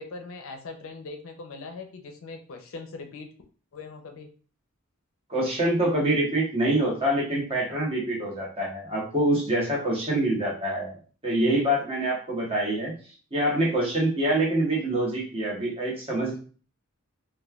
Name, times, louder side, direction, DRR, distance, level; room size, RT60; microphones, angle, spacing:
voice 1, 0.0-3.3 3.7-4.3, left 3 dB, 70° left, 5 dB, 0.5 m, -40 dB
voice 2, 5.3-10.9 11.2-12.9 13.3-16.4, right 1 dB, 30° right, -3 dB, 1.0 m, -25 dB
3.0 x 2.2 x 2.3 m, 0.39 s
head